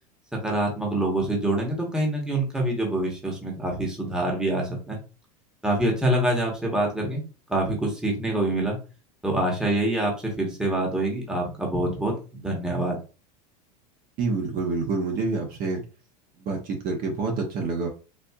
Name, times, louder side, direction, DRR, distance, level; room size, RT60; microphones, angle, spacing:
voice 1, 0.3-5.0 5.6-7.2 7.5-8.8 9.2-13.0, right 1 dB, 5° right, 0 dB, 1.1 m, -26 dB
voice 2, 14.2-15.8 16.4-17.9, right 3 dB, 45° right, 2 dB, 0.9 m, -27 dB
4.3 x 2.6 x 2.3 m, 0.33 s
supercardioid pair, 115°, 21 cm